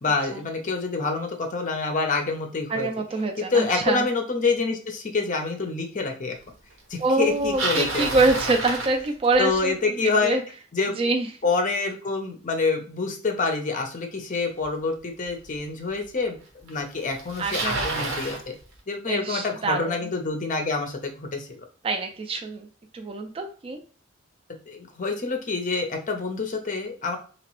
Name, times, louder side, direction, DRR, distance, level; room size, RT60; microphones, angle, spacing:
voice 1, 0.0-2.9 3.4-6.4 6.9-8.1 9.4-10.4 10.7-10.9 11.4-16.4 16.6-18.5 18.9-21.6 24.7-27.2, left 4 dB, 40° left, 4 dB, 0.6 m, -27 dB
voice 2, 2.7-4.1 7.0-10.4 11.0-11.3 17.4-18.1 19.1-20.0 21.8-22.7 22.9-23.8, right 3 dB, 30° right, 4 dB, 0.3 m, -25 dB
Bicycle, 7.2-9.6 14.6-14.7 15.5-15.6 16.7-16.8 17.0-18.4, right 2 dB, 75° right, 0.9 m, -29 dB
3.0 x 2.9 x 3.0 m, 0.39 s
head